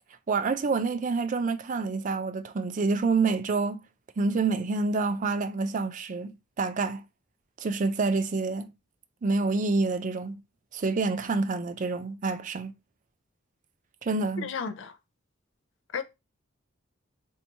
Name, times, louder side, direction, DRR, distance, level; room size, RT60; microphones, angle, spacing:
voice 1, 0.3-3.8 4.2-6.3 6.6-7.0 7.6-8.7 9.2-10.4 10.7-12.7 14.0-14.5, right 3 dB, 40° right, 0.4 m, -27 dB
voice 2, 14.4-14.9 15.9-16.0, left 6 dB, 65° left, 0.5 m, -33 dB
2.9 x 2.7 x 4.4 m
head